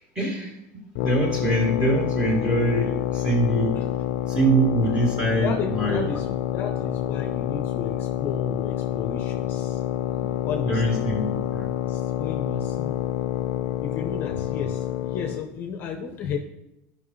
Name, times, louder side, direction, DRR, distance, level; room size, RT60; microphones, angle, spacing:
voice 1, 0.2-3.8 4.3-6.1 10.7-11.7, right 2 dB, 15° right, -2 dB, 2.2 m, -24 dB
sound 1, 0.9-15.5, left 12 dB, 65° left, 0.4 m, -28 dB
voice 2, 5.4-9.8 10.1-11.0 11.9-13.0 13.8-16.4, left 6 dB, 30° left, 5 dB, 0.7 m, -33 dB
13.5 x 5.6 x 3.2 m, 0.89 s
cardioid pair, 170°, 7 cm